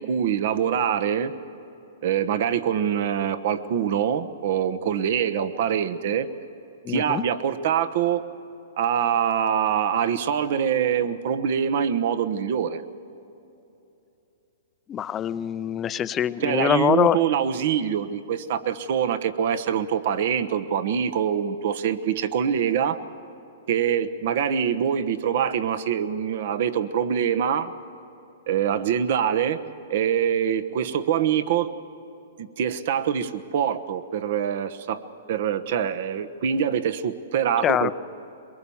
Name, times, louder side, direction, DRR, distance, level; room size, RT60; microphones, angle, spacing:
voice 1, 0.0-1.3 2.0-6.3 6.9-8.2 8.8-12.8 16.4-23.0 23.7-27.7 28.5-29.6 29.9-31.7 32.4-35.0 35.3-37.9, right 8 dB, 60° right, 11 dB, 1.1 m, -24 dB
voice 2, 6.8-7.2 14.9-17.2 37.6-37.9, left 9 dB, 25° left, 15 dB, 0.6 m, -24 dB
22.5 x 22.0 x 7.1 m, 2.9 s
hypercardioid pair, 130°, 0 cm